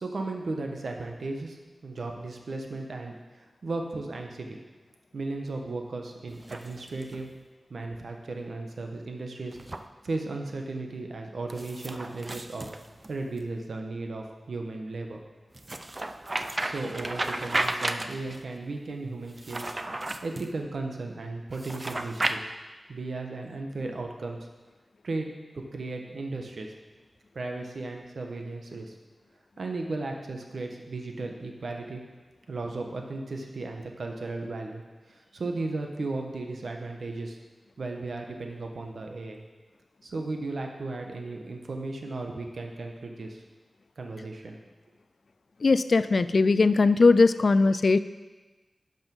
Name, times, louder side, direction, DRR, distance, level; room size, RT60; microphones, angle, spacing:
voice 1, 0.0-1.6 1.8-4.6 5.1-7.3 7.7-9.6 10.0-12.7 13.1-15.2 16.6-19.7 20.2-22.5 22.9-24.5 25.0-25.3 25.7-26.7 27.3-28.9 29.6-32.0 32.5-37.4 37.8-39.4 40.0-43.4 44.0-44.6, right 3 dB, 75° right, 3 dB, 1.2 m, -35 dB
sound 1, 6.3-7.3 9.5-9.8 11.5-13.4 15.5-18.4 19.3-20.5 21.5-22.4, right 2 dB, 35° right, 0.5 m, -33 dB
voice 2, 45.6-48.0, left 3 dB, 65° left, 14 dB, 0.3 m, -20 dB
11.0 x 5.4 x 5.4 m, 1.2 s
cardioid pair, 55°, 0 cm